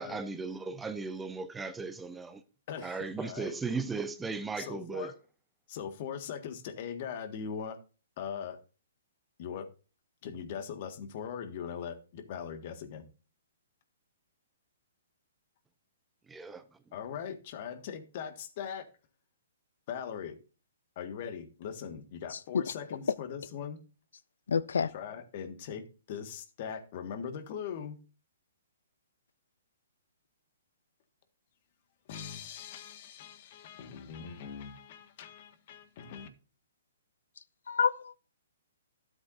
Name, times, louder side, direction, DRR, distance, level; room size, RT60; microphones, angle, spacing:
voice 1, 0.0-2.4 2.8-5.1 16.3-16.6, right 4 dB, 10° right, 0.7 m, -36 dB
voice 2, 2.7-3.5 4.6-5.1 5.7-7.8 8.2-8.6 9.4-9.7 10.2-13.0 16.9-18.9 19.9-20.4 21.0-23.8 24.9-28.0 32.1-36.3, left 7 dB, 45° left, 1.6 m, -40 dB
voice 3, 24.5-24.9 37.7-38.2, left 6 dB, 75° left, 0.4 m, -28 dB
12.5 x 7.9 x 2.6 m
hypercardioid pair, 135°, 0 cm